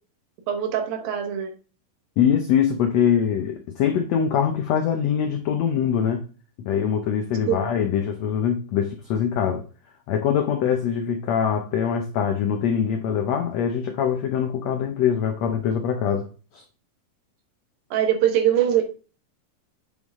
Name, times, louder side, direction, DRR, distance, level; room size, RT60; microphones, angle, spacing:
voice 1, 0.5-1.5 7.5-7.7 17.9-18.8, right 10 dB, 85° right, 3.0 m, -22 dB
voice 2, 2.2-6.2 6.6-9.6 10.1-16.3 16.5-16.6, left 8 dB, 85° left, 1.5 m, -23 dB
7.9 x 5.3 x 3.6 m
omnidirectional pair, 4.0 m